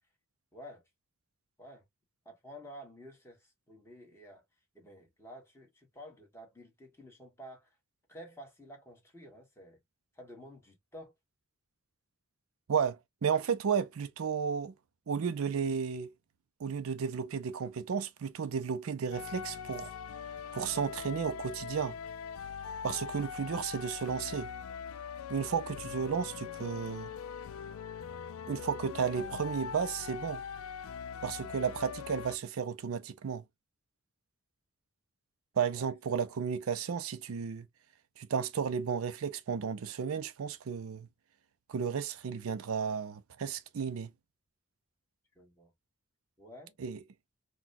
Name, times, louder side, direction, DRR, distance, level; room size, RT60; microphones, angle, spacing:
voice 1, 0.5-0.8 1.6-1.8 2.2-4.4 4.7-7.8 8.1-9.8 10.1-11.1 35.7-36.4 45.3-45.7 46.4-46.8, equal, 10° left, 1.3 m, -51 dB
voice 2, 12.7-14.7 15.1-16.1 16.6-20.0 20.5-21.9 22.8-24.5 25.3-27.1 28.5-30.4 31.2-33.4 35.6-37.7 38.2-41.1 41.7-44.1 46.8-47.0, right 6 dB, 85° right, 0.4 m, -33 dB
sound 1, 19.1-32.4, left 7 dB, 80° left, 0.4 m, -42 dB
4.0 x 2.2 x 2.6 m
head